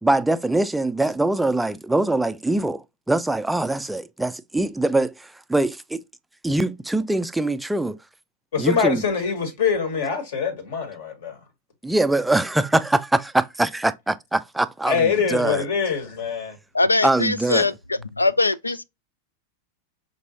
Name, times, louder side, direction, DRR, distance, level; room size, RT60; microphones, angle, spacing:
voice 1, 0.0-6.0 6.4-8.0 8.6-9.0 11.8-12.4 12.7-13.7 14.3-15.6 17.0-17.7 18.7-18.8, right 2 dB, 5° right, 0.3 m, -23 dB
voice 2, 8.5-11.4 14.9-16.6, left 6 dB, 55° left, 1.4 m, -24 dB
voice 3, 16.8-17.7 18.2-18.8, left 3 dB, 80° left, 0.3 m, -21 dB
5.1 x 3.0 x 2.8 m
figure-of-eight pair, 90°, 0 cm